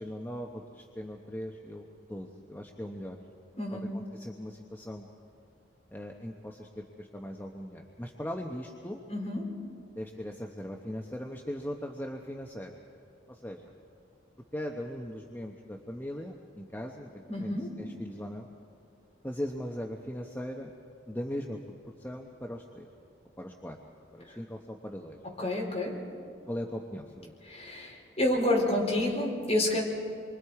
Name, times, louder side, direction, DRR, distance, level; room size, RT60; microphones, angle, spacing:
voice 1, 0.0-3.2 3.7-5.1 5.9-9.0 10.0-12.8 13.3-13.6 14.5-18.5 19.2-20.7 21.1-21.6 22.0-22.9 23.4-23.8 24.1-25.2 26.5-27.3, equal, 10° left, 1 dB, 0.9 m, -39 dB
voice 2, 3.6-4.0 9.1-9.4 17.3-17.7 25.2-26.0 27.5-29.8, left 1 dB, 35° left, -2 dB, 4.2 m, -29 dB
27.5 x 23.5 x 4.8 m, 2.4 s
head